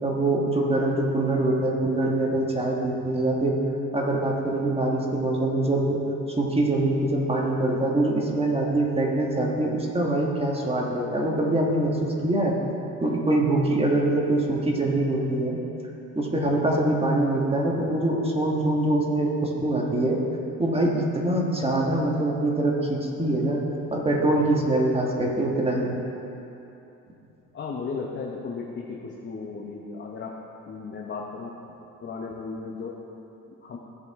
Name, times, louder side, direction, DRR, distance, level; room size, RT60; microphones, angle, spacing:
voice 1, 0.0-3.6 3.9-6.0 6.4-12.5 13.0-15.6 16.1-20.2 20.6-23.6 23.9-26.0, right 1 dB, 15° right, -2 dB, 1.5 m, -24 dB
voice 2, 27.5-30.4 30.6-31.5 32.0-32.9 33.6-33.8, left 4 dB, 35° left, -1 dB, 0.9 m, -35 dB
15.5 x 5.4 x 3.6 m, 2.9 s
cardioid pair, 105°, 34 cm